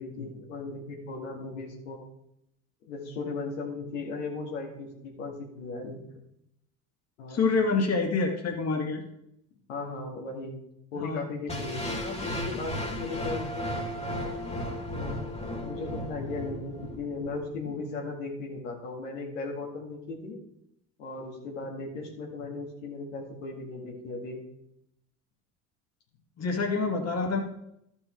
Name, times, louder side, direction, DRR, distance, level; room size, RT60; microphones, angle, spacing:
voice 1, 0.0-2.0 2.8-6.0 7.2-7.4 9.7-10.6 10.9-13.8 14.9-15.3 15.6-20.4 21.0-24.4, left 3 dB, 85° left, -1 dB, 2.2 m, -37 dB
voice 2, 7.3-9.0 11.0-11.2 26.4-27.4, left 4 dB, 40° left, 2 dB, 2.0 m, -27 dB
sound 1, 11.5-17.5, equal, 15° left, 2.0 m, -35 dB
12.5 x 5.6 x 4.6 m, 0.78 s
hypercardioid pair, 70°, 38 cm